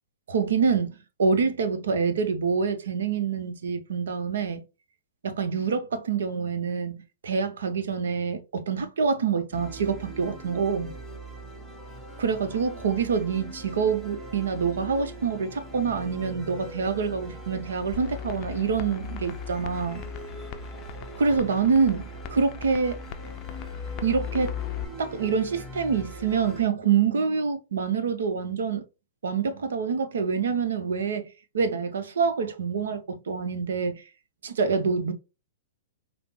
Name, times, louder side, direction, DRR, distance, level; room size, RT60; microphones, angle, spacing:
voice 1, 0.3-4.6 5.2-10.9 12.2-20.1 21.2-23.0 24.0-24.6 25.0-28.8 29.2-31.3 31.5-34.0 34.4-35.1, right 5 dB, 75° right, 0.7 m, -26 dB
sound 1, 9.5-26.7, right 2 dB, 5° right, 0.9 m, -42 dB
sound 2, 17.9-24.8, left 13 dB, 40° left, 0.4 m, -38 dB
4.9 x 2.0 x 3.1 m
hypercardioid pair, 120°, 0 cm